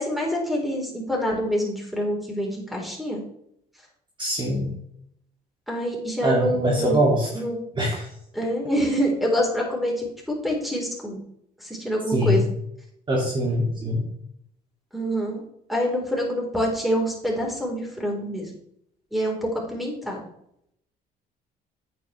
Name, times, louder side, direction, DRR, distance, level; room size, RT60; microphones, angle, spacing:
voice 1, 0.0-3.2 5.7-7.6 8.3-11.2 11.6-12.4 14.9-15.4 15.7-18.5 19.1-20.3, equal, ahead, -1 dB, 3.9 m, -26 dB
voice 2, 4.2-4.7 6.2-7.3 7.7-8.1 12.1-12.4 13.1-14.1, equal, 30° right, -2 dB, 2.5 m, -23 dB
9.2 x 9.2 x 3.3 m, 0.74 s
cardioid pair, 110°, 17 cm